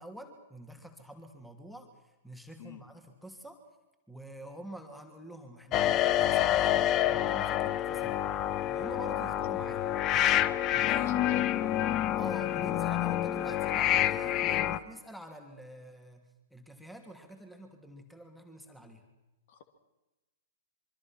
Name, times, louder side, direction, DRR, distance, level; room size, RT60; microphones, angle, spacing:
voice 1, 0.0-1.9 2.2-3.6 4.1-8.2 8.7-9.9 10.7-11.1 12.2-19.0, right 1 dB, ahead, 5 dB, 2.9 m, -47 dB
sound 1, 5.7-14.8, left 12 dB, 30° left, 1.0 m, -28 dB
voice 2, 10.9-11.8 19.5-19.6, left 8 dB, 50° left, 9 dB, 2.7 m, -43 dB
26.5 x 24.5 x 6.1 m, 1.0 s
figure-of-eight pair, 110°, 0 cm